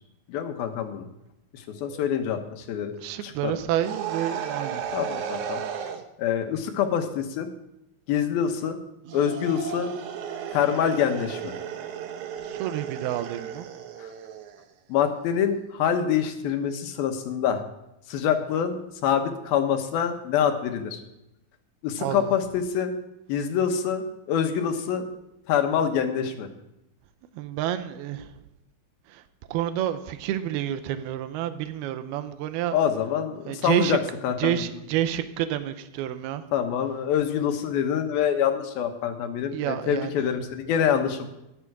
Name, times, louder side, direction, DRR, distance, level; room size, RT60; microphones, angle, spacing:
voice 1, 0.3-1.1 1.5-2.9 3.2-3.5 4.9-5.9 6.2-7.5 8.1-8.8 9.1-9.9 10.5-11.5 14.0-14.1 14.9-17.6 18.1-21.0 21.8-22.9 23.3-25.0 25.5-26.5 32.7-34.7 36.5-41.3, left 8 dB, 75° left, 6 dB, 3.0 m, -26 dB
voice 2, 3.0-4.8 12.5-13.7 22.0-22.3 27.4-28.3 29.5-32.8 33.5-34.0 34.4-36.4 39.5-40.2, right 12 dB, 85° right, 11 dB, 2.7 m, -29 dB
sound 1, 3.8-6.0 9.0-14.6, right 8 dB, 70° right, 2.0 m, -34 dB
14.5 x 11.0 x 4.7 m, 0.90 s
omnidirectional pair, 4.3 m